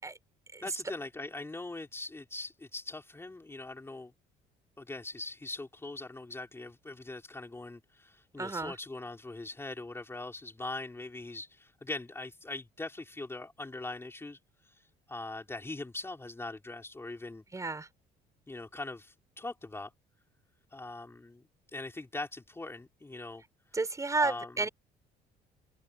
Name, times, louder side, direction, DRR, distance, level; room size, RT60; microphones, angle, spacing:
voice 1, 0.6-4.1 4.8-14.4 14.7-14.8 15.1-17.4 18.5-19.9 20.7-21.4 21.7-23.4 24.2-24.7, left 2 dB, 15° left, 4.1 m, -41 dB
voice 2, 8.4-8.7 17.5-17.9 23.7-24.7, right 3 dB, 20° right, 6.3 m, -31 dB
cardioid pair, 110°, 17 cm